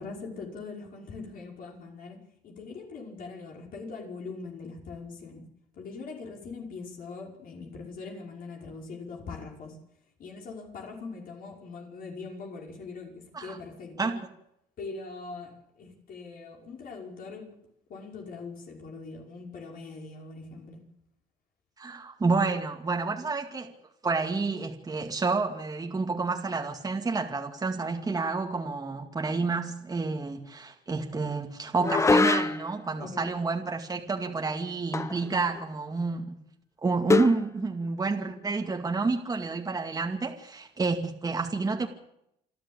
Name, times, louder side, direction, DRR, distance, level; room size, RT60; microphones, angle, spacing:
voice 1, 0.0-5.5 5.7-9.8 10.2-14.2 14.8-17.5 17.9-20.8 33.0-33.4, left 4 dB, 55° left, 5.4 m, -42 dB
voice 2, 21.8-23.7 24.0-36.4 36.8-41.9, right 4 dB, 20° right, 2.3 m, -29 dB
sound 1, 31.8-32.8 34.9-35.3 35.6-35.7 37.1-37.4, left 3 dB, 15° left, 1.0 m, -24 dB
28.0 x 11.0 x 8.8 m
cardioid pair, 110°, 17 cm